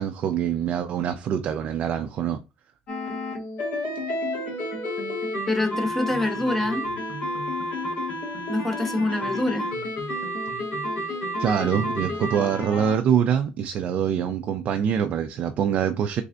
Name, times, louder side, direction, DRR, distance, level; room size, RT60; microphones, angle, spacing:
voice 1, 0.0-2.4 11.4-16.2, right 8 dB, 45° right, 0.3 m, -24 dB
sound 1, 2.9-13.0, left 1 dB, 55° left, 1.3 m, -30 dB
voice 2, 5.5-6.8 8.5-9.7, left 2 dB, 10° left, 0.6 m, -26 dB
3.8 x 3.3 x 2.2 m
cardioid pair, 165°, 3 cm